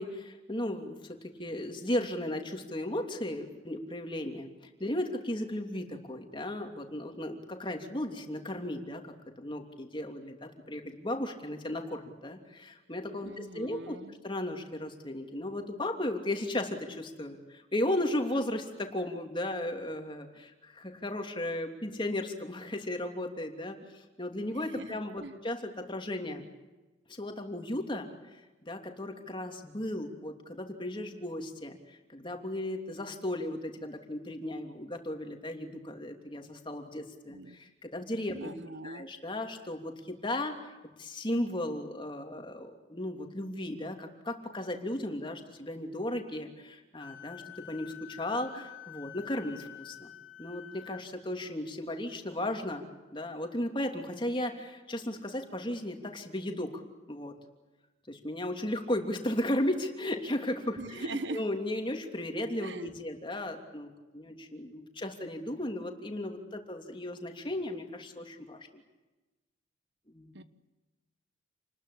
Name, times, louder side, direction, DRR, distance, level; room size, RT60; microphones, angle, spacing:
voice 1, 0.0-4.5 4.8-23.8 24.2-26.4 27.1-31.8 32.1-38.5 38.8-40.6 41.0-50.1 50.4-56.8 57.1-57.3 58.1-68.8 70.1-70.3, left 1 dB, 25° left, 4 dB, 3.0 m, -35 dB
voice 2, 13.2-14.1 24.5-25.4 37.3-37.6 38.3-39.1 60.8-61.4 62.6-62.9 70.3-70.4, right 2 dB, 65° right, 11 dB, 1.3 m, -41 dB
Wind instrument woodwind instrument, 47.0-51.0, left 11 dB, 75° left, 3.2 m, -48 dB
29.0 x 21.0 x 8.5 m, 1.1 s
head